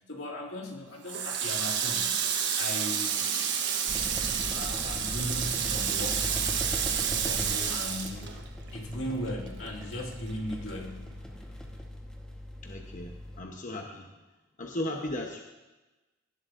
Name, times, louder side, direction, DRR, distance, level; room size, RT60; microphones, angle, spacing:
voice 1, 0.1-2.1 2.5-3.3 4.5-6.3 7.2-8.3 8.7-11.1, left 1 dB, 80° left, 0 dB, 2.2 m, -37 dB
Water tap faucet, 1.1-8.9 9.2-10.6, right 8 dB, 65° right, 1.2 m, -30 dB
sound 1, 3.9-13.4, equal, 5° left, 1.2 m, -39 dB
voice 2, 12.6-14.1 14.6-15.4, left 1 dB, 40° left, 1 dB, 1.0 m, -36 dB
17.5 x 11.5 x 2.6 m, 1.1 s
head